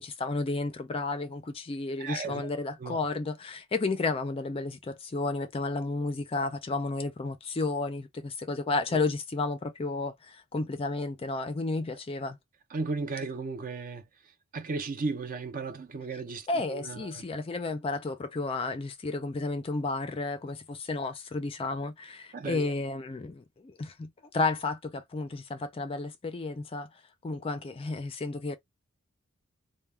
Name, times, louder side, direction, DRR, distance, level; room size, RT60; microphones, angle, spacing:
voice 1, 0.0-12.4 16.5-26.9 27.2-28.6, left 3 dB, 25° left, 0.4 m, -32 dB
voice 2, 2.0-2.5 2.8-3.0 8.9-9.0 12.7-14.1 14.5-17.2 22.3-22.7, right 4 dB, 40° right, 0.5 m, -35 dB
2.2 x 2.1 x 3.2 m
head